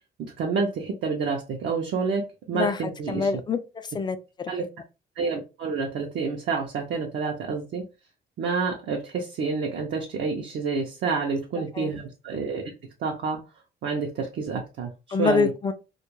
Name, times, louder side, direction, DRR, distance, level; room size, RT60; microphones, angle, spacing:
voice 1, 0.2-3.3 4.5-4.6 5.2-7.8 8.4-12.7 13.0-13.4 13.8-15.5, right 4 dB, 65° right, 0.6 m, -28 dB
voice 2, 3.1-3.6 3.9-4.5 11.7-11.9 15.1-15.7, left 5 dB, 20° left, 0.4 m, -25 dB
2.3 x 2.1 x 3.0 m
cardioid pair, 90°, 20 cm